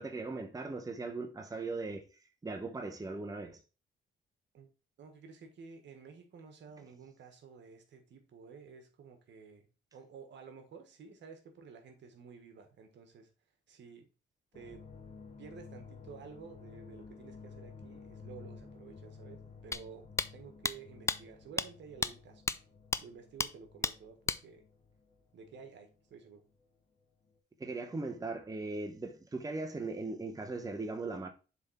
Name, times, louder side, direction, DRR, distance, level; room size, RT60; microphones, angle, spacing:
voice 1, 0.0-3.6 27.6-31.3, right 3 dB, 20° right, 0.9 m, -39 dB
voice 2, 5.0-13.3 13.7-14.1 14.5-14.8 15.4-22.4 23.0-24.6 25.3-26.4, right 5 dB, 65° right, 1.5 m, -52 dB
sound 1, 14.5-26.7 26.9-27.4, left 5 dB, 30° left, 1.3 m, -53 dB
sound 2, 19.7-19.8 20.2-20.3 20.6-20.7 21.1-21.2 21.6-21.7 22.0-22.1 22.5-22.6 22.9-23.0 23.4-23.5 23.8-23.9 24.3-24.4, left 3 dB, 15° left, 0.3 m, -31 dB
7.2 x 3.6 x 4.2 m
cardioid pair, 90°, 20 cm